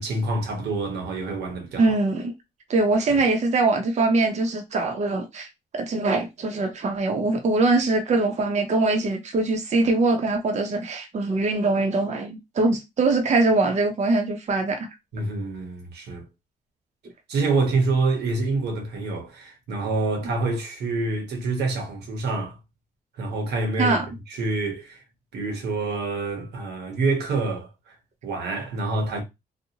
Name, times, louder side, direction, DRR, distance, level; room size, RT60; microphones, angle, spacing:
voice 1, 0.0-1.9 3.1-3.2 15.1-16.2 17.3-22.6 23.1-24.0 24.3-25.0 25.3-28.0 28.2-29.2, right 3 dB, 85° right, 0.9 m, -27 dB
voice 2, 1.8-2.3 2.7-5.5 5.7-14.9 23.8-24.1, right 3 dB, 45° right, 0.6 m, -22 dB
2.6 x 2.0 x 2.8 m
cardioid pair, 100°, 17 cm